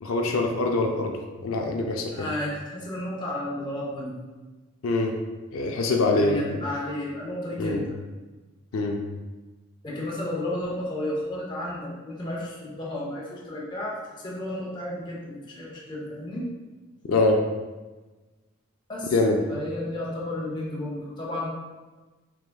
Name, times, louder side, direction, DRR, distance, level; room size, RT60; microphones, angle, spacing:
voice 1, 0.0-2.3 4.8-5.2 5.5-6.6 7.6-7.8 8.7-9.0 17.1-17.4 19.1-19.4, left 2 dB, 85° left, 2 dB, 0.4 m, -24 dB
voice 2, 2.1-4.1 6.0-7.9 9.8-16.5 18.9-19.1 19.5-21.5, left 1 dB, 20° left, -5 dB, 0.7 m, -32 dB
4.8 x 3.4 x 2.2 m, 1.2 s
head